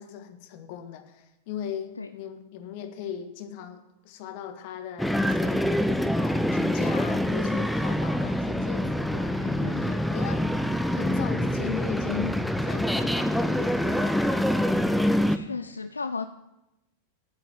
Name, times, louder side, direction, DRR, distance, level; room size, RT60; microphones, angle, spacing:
voice 1, 0.0-5.7 6.2-14.7, left 9 dB, 50° left, 8 dB, 1.6 m, -38 dB
sound 1, 5.0-15.4, equal, ahead, 0.8 m, -25 dB
voice 2, 9.4-10.0 15.3-16.3, left 4 dB, 75° left, 11 dB, 0.5 m, -35 dB
10.5 x 8.6 x 9.5 m, 0.94 s
figure-of-eight pair, 90°, 0 cm